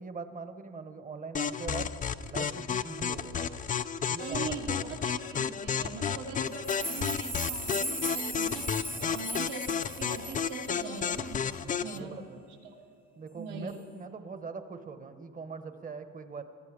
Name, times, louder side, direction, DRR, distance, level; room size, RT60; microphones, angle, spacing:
voice 1, 0.0-1.9 2.3-3.6 4.1-4.9 8.9-9.2 11.6-12.4 13.2-16.4, right 4 dB, 25° right, 9 dB, 1.2 m, -42 dB
sound 1, 1.3-12.0, left 7 dB, 25° left, 0.5 m, -32 dB
voice 2, 4.2-11.4 11.8-12.2 12.6-12.8 13.3-13.8, right 5 dB, 80° right, -1 dB, 2.7 m, -41 dB
sound 2, 6.5-10.8 11.0-11.1, right 1 dB, 5° right, 1.0 m, -38 dB
19.5 x 14.0 x 5.0 m, 2.6 s
cardioid pair, 105°, 31 cm